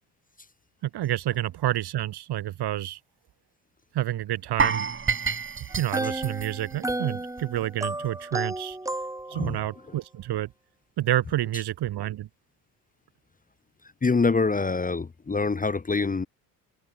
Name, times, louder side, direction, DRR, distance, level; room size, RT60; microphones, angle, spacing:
voice 1, 0.8-3.0 3.9-4.9 5.8-8.8 9.3-10.5 11.0-12.3, right 13 dB, 50° right, 1.4 m, -29 dB
sound 1, 4.6-7.6 7.9-8.1 8.5-8.6, right 5 dB, 25° right, 1.6 m, -29 dB
sound 2, 5.7-9.7, right 2 dB, 5° right, 1.4 m, -33 dB
voice 2, 14.0-16.3, left 4 dB, 15° left, 1.0 m, -25 dB
hypercardioid pair, 65°, 50 cm